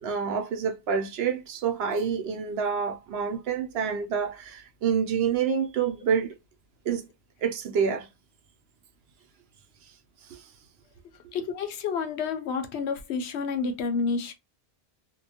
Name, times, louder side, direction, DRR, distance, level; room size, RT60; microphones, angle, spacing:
voice 1, 0.0-6.3 6.8-7.1 7.4-8.1 10.3-10.5, right 6 dB, 70° right, 0.8 m, -27 dB
voice 2, 11.3-14.3, left 5 dB, 80° left, 0.9 m, -29 dB
2.6 x 2.2 x 2.7 m
omnidirectional pair, 1.1 m